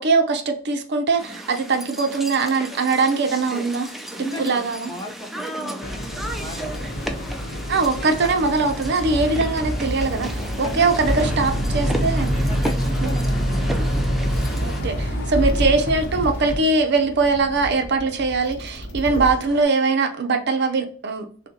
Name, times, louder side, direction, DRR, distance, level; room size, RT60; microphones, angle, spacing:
voice 1, 0.0-3.9 4.4-4.9 7.7-12.5 13.0-13.1 14.5-21.3, right 3 dB, 60° right, 6 dB, 0.6 m, -21 dB
sound 1, 1.2-14.8, right 1 dB, ahead, 0.4 m, -34 dB
voice 2, 4.2-7.3 9.1-9.2 10.6-11.3 12.5-14.0, right 1 dB, 20° left, 3 dB, 0.9 m, -36 dB
Boat Water vehicle, 5.8-16.6, equal, 55° left, 0.9 m, -26 dB
sound 2, 9.0-19.6, right 1 dB, 80° left, 0.9 m, -33 dB
6.3 x 2.2 x 2.7 m, 0.44 s
head